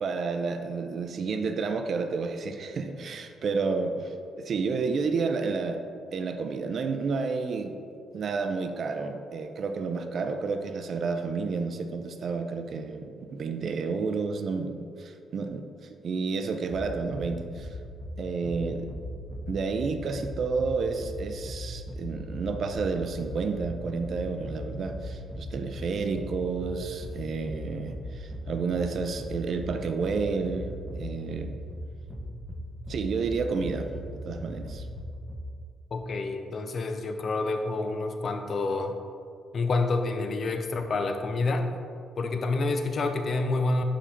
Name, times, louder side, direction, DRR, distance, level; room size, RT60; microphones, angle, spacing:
voice 1, 0.0-5.8 6.1-7.8 8.1-15.7 16.0-17.7 18.2-18.9 19.5-31.6 32.9-34.9, right 4 dB, 55° right, 7 dB, 0.5 m, -30 dB
sound 1, 16.6-35.4, left 1 dB, 10° left, 0.9 m, -38 dB
voice 2, 35.9-39.0 39.5-41.7 42.2-43.8, left 3 dB, 50° left, 6 dB, 0.6 m, -28 dB
5.2 x 5.1 x 4.3 m, 2.4 s
cardioid pair, 90°, 0 cm